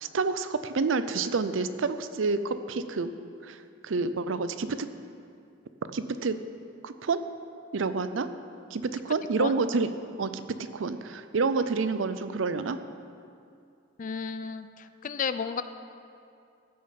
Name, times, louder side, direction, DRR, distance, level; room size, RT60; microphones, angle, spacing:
voice 1, 0.0-3.1 3.4-3.6 3.8-4.9 5.9-6.4 6.8-7.2 7.7-8.3 8.7-10.4 10.7-12.8, right 4 dB, 85° right, 11 dB, 0.5 m, -28 dB
voice 2, 14.0-15.6, left 6 dB, 45° left, 12 dB, 0.4 m, -32 dB
14.5 x 6.5 x 5.8 m, 2.5 s
head